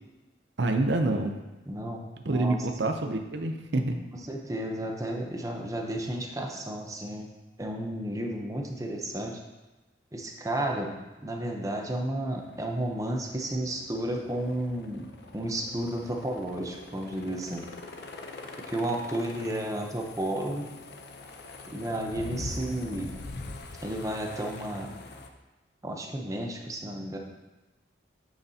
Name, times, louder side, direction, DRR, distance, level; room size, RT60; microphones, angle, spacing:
voice 1, 0.6-1.4 2.2-4.0, right 2 dB, 65° right, 5 dB, 0.7 m, -27 dB
voice 2, 1.7-2.6 4.3-7.3 7.6-9.4 10.1-10.9 11.2-17.6 18.7-20.7 21.7-23.1 23.8-24.9 25.8-27.2, right 1 dB, 20° right, 1 dB, 0.8 m, -32 dB
sound 1, 12.3-25.3, left 2 dB, 60° left, 0.6 m, -43 dB
9.1 x 6.6 x 2.8 m, 1.1 s
head